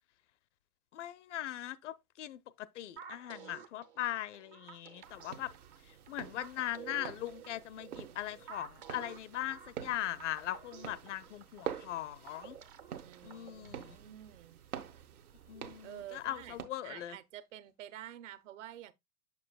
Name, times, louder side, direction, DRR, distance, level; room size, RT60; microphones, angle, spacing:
voice 1, 0.9-5.5 6.1-12.6 13.2-14.0 15.5-17.2, left 13 dB, 55° left, 0.5 m, -40 dB
sound 1, 3.0-14.0, right 8 dB, 20° right, 0.4 m, -52 dB
sound 2, 5.0-16.6, right 9 dB, 75° right, 1.0 m, -47 dB
voice 2, 13.0-14.6 15.8-18.9, right 12 dB, 55° right, 0.8 m, -49 dB
7.0 x 6.9 x 2.2 m
figure-of-eight pair, 100°, 44 cm